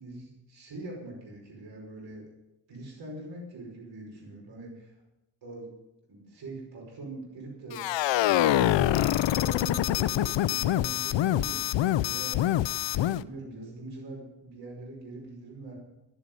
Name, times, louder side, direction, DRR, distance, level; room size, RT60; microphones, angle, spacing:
voice 1, 0.0-2.2 2.7-4.9 5.4-5.7 6.1-7.8 8.2-12.6 12.9-15.8, right 2 dB, 75° right, -2 dB, 5.5 m, -43 dB
sound 1, 7.7-13.2, left 13 dB, 80° left, 0.6 m, -25 dB
15.0 x 12.5 x 5.4 m, 0.95 s
wide cardioid pair, 130°, 43 cm